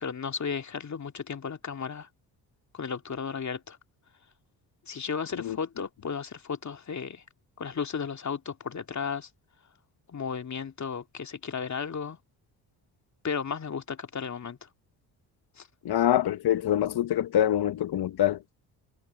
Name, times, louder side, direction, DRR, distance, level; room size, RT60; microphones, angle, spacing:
voice 1, 0.0-2.1 2.7-3.8 4.9-7.2 7.6-9.3 10.1-12.2 13.2-14.7 15.5-15.7, left 6 dB, 40° left, 2.3 m, -34 dB
voice 2, 15.8-18.4, left 11 dB, 60° left, 1.4 m, -25 dB
hypercardioid pair, 55°, 44 cm